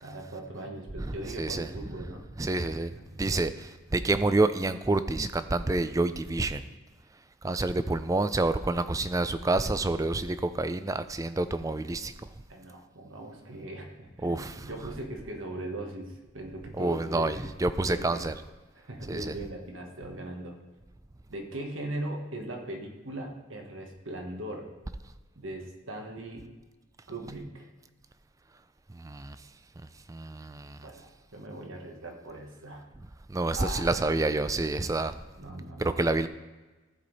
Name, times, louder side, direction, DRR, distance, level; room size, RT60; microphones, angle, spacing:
voice 1, 0.0-2.2 3.0-3.2 12.5-17.5 17.9-18.2 18.7-20.6 21.3-24.7 25.3-26.4 27.1-27.7 30.8-32.9 33.5-33.9 35.4-36.0, right 1 dB, 75° right, 2 dB, 1.6 m, -39 dB
voice 2, 1.0-1.7 2.4-2.9 3.2-6.6 7.4-12.1 14.2-14.7 16.8-18.3 19.1-19.3 28.9-29.4 30.1-30.9 33.3-35.2 35.8-36.3, right 2 dB, 15° right, 12 dB, 0.4 m, -28 dB
14.5 x 4.9 x 4.1 m, 1.2 s
head